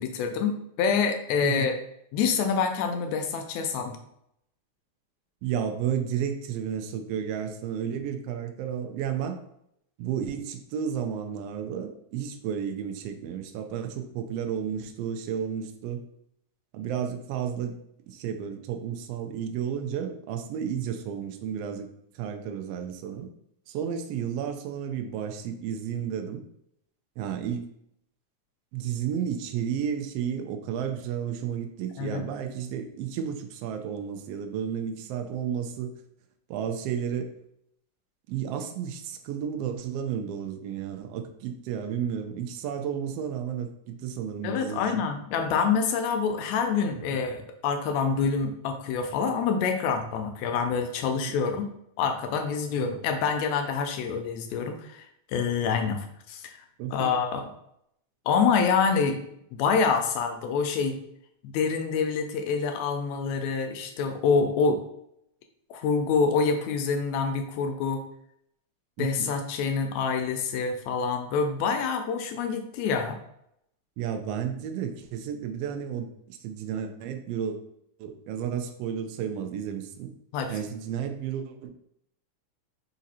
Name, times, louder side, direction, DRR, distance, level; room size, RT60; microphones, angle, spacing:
voice 1, 0.0-1.7 2.1-4.0 32.0-32.2 44.4-51.7 52.0-56.5 56.9-57.5 58.3-59.2 59.5-61.0 61.4-64.8 65.7-68.0 69.0-73.2 80.3-80.5, left 5 dB, 80° left, 5 dB, 1.7 m, -26 dB
voice 2, 1.4-1.7 5.4-9.4 10.0-16.0 16.7-17.8 18.1-21.9 22.1-23.3 23.7-26.4 27.2-27.6 28.7-35.9 36.5-37.3 38.3-45.0 47.1-47.2 51.1-51.4 52.8-52.9 56.8-57.1 69.0-69.3 74.0-77.6 78.0-80.1 80.5-81.7, right 8 dB, 90° right, 6 dB, 1.3 m, -32 dB
5.0 x 2.6 x 4.1 m, 0.75 s
omnidirectional pair, 3.4 m